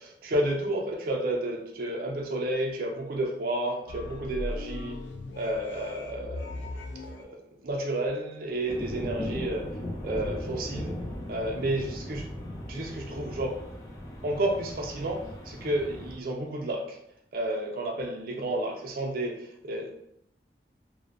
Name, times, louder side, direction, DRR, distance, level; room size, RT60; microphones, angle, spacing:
voice 1, 0.0-5.0 5.4-6.6 7.0-9.7 10.0-11.0 11.3-12.3 12.7-13.6 14.2-17.0 17.3-19.9, right 1 dB, 55° right, 1 dB, 0.4 m, -31 dB
sound 1, 3.9-7.2, left 2 dB, 85° left, 0.4 m, -38 dB
sound 2, 8.7-16.2, left 1 dB, 15° left, 0.4 m, -37 dB
2.5 x 2.1 x 2.4 m, 0.74 s
head